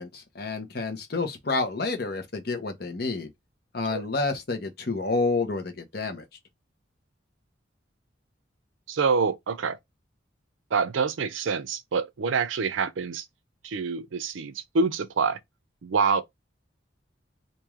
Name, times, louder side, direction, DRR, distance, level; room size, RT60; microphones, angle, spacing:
voice 1, 0.0-3.3 3.7-6.2, left 3 dB, 50° left, 0.9 m, -29 dB
voice 2, 8.9-9.8 10.7-13.2 13.6-15.4 15.8-16.2, right 5 dB, 80° right, 0.5 m, -26 dB
3.1 x 2.7 x 3.5 m
head